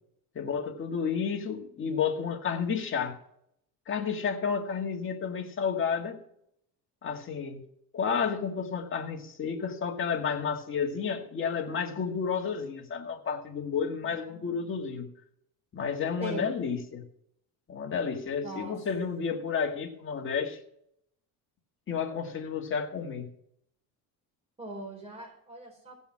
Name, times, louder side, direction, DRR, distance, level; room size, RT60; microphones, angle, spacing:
voice 1, 0.4-3.2 3.9-6.2 7.0-7.6 7.9-15.1 15.7-17.0 17.7-20.6 21.9-23.3, left 6 dB, 30° left, 1 dB, 1.9 m, -31 dB
voice 2, 16.2-16.5 18.4-18.8 24.6-26.0, right 1 dB, 15° right, -1 dB, 4.4 m, -40 dB
16.0 x 5.5 x 5.9 m, 0.72 s
cardioid pair, 150°, 38 cm